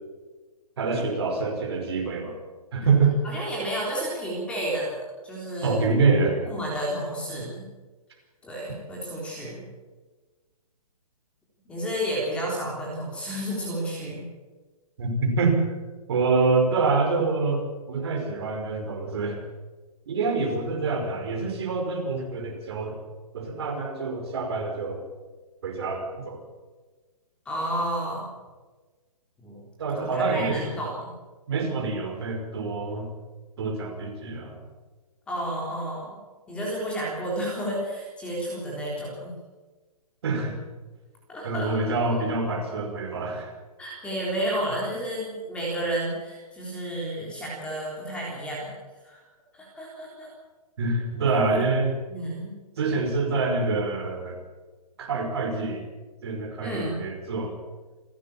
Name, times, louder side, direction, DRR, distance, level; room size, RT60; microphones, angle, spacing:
voice 1, 0.8-2.4 2.7-3.2 5.6-6.4 15.0-15.6 16.1-17.6 17.9-19.4 20.1-23.0 23.3-25.0 25.6-26.5 29.8-30.8 31.5-33.1 33.6-34.6 40.2-40.6 41.4-43.5 50.8-51.9 52.8-54.4 55.0-55.8 56.2-57.5, right 3 dB, 40° right, 2 dB, 5.3 m, -26 dB
voice 2, 3.2-5.8 6.5-7.7 8.4-9.7 11.7-14.3 27.5-28.3 29.4-29.6 29.9-31.1 35.3-36.2 36.5-39.4 41.3-41.7 43.8-48.7 49.0-49.2 49.5-50.3 51.2-51.6 52.1-52.5 56.6-57.0, right 1 dB, 5° left, -4 dB, 3.7 m, -31 dB
28.5 x 13.5 x 7.2 m, 1.3 s
hypercardioid pair, 175°, 20 cm